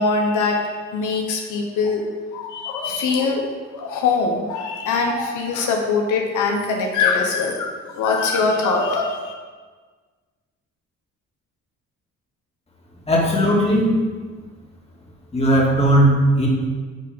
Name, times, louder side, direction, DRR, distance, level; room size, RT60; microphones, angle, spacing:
voice 1, 0.0-2.0 2.3-3.4 3.7-9.3, left 4 dB, 85° left, 1 dB, 1.0 m, -22 dB
voice 2, 13.1-13.9 15.3-16.5, right 1 dB, 20° left, -3 dB, 2.1 m, -17 dB
10.0 x 3.5 x 5.3 m, 1.5 s
cardioid pair, 90°, 30 cm